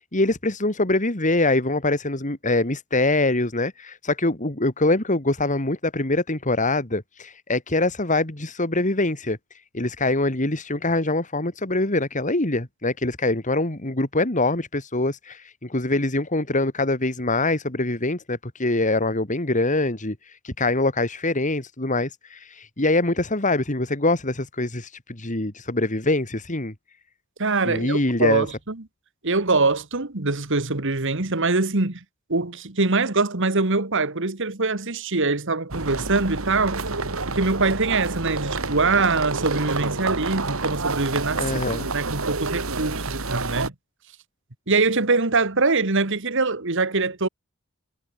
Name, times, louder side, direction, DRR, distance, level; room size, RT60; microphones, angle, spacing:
voice 1, 0.0-26.7 27.6-28.5 41.4-41.9, left 2 dB, 35° left, 2.7 m, -24 dB
voice 2, 27.4-28.8 29.2-32.0 32.3-36.8 37.3-41.6 41.9-43.7 44.7-47.3, right 3 dB, 60° right, 2.0 m, -23 dB
sound 1, 35.7-43.7, right 3 dB, 85° right, 2.6 m, -28 dB
head